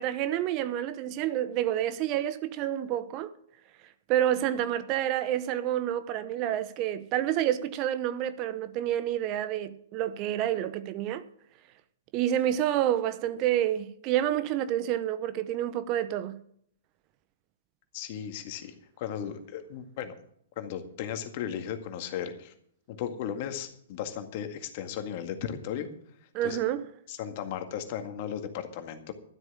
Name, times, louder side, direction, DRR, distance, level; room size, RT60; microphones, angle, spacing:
voice 1, 0.0-3.4 4.1-11.2 12.1-16.4 26.3-26.8, right 11 dB, 35° right, 0.8 m, -28 dB
voice 2, 17.9-20.1 20.6-22.5 22.9-25.9 26.4-26.6 27.1-29.1, left 9 dB, 45° left, 1.9 m, -36 dB
12.5 x 8.1 x 7.3 m
hypercardioid pair, 115°, 0 cm